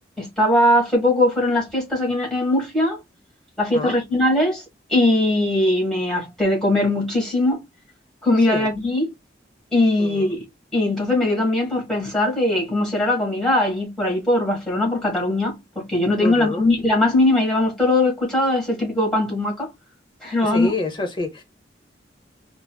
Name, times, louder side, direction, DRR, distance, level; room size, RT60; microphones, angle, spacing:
voice 1, 0.2-3.0 3.6-4.6 4.9-7.6 8.2-9.1 9.7-10.4 10.7-19.7 20.2-20.7, left 1 dB, 5° left, 1.5 m, -20 dB
voice 2, 10.0-10.4 16.2-16.7 20.4-21.4, left 2 dB, 25° left, 0.7 m, -27 dB
3.8 x 2.0 x 2.2 m
head